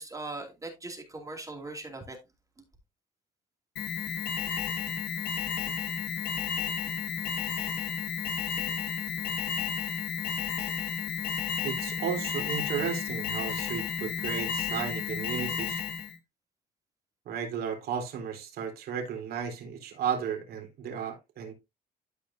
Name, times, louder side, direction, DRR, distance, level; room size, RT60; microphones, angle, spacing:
voice 1, 0.0-2.2, right 2 dB, 20° right, 2.5 m, -40 dB
Alarm, 3.8-16.2, left 7 dB, 65° left, 2.0 m, -32 dB
voice 2, 11.6-15.8 17.3-21.5, right 7 dB, 65° right, 3.8 m, -34 dB
13.0 x 5.1 x 2.7 m
cardioid pair, 110°, 17 cm